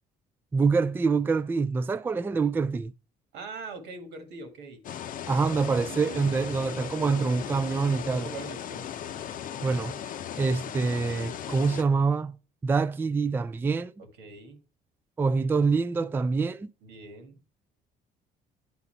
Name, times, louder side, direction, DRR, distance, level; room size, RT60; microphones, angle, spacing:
voice 1, 0.5-2.9 5.3-8.3 9.6-10.0 10.4-12.4 12.6-13.9 15.2-16.7, right 4 dB, 10° right, 0.3 m, -25 dB
voice 2, 3.3-4.8 5.9-6.7 8.1-8.9 14.0-14.6 16.8-17.4, right 4 dB, 90° right, 1.9 m, -43 dB
sound 1, 4.8-11.8, left 9 dB, 55° left, 0.6 m, -37 dB
9.8 x 4.1 x 4.4 m
cardioid pair, 110°, 17 cm